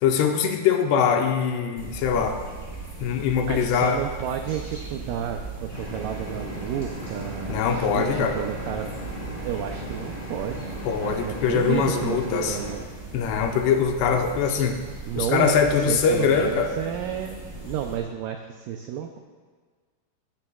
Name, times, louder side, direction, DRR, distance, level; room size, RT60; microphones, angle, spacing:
voice 1, 0.0-2.4 3.0-4.0 7.5-8.4 10.9-12.6 13.1-14.8 15.2-16.7, left 6 dB, 90° left, 4 dB, 3.0 m, -22 dB
sound 1, 1.8-18.0, right 2 dB, 5° right, 3.0 m, -39 dB
voice 2, 3.5-8.9 9.3-10.7 11.0-12.9 15.1-19.2, right 9 dB, 85° right, 4 dB, 1.9 m, -31 dB
sound 2, 5.7-12.7, right 1 dB, 40° left, 3.7 m, -37 dB
16.5 x 13.5 x 2.4 m, 1.5 s
omnidirectional pair, 4.7 m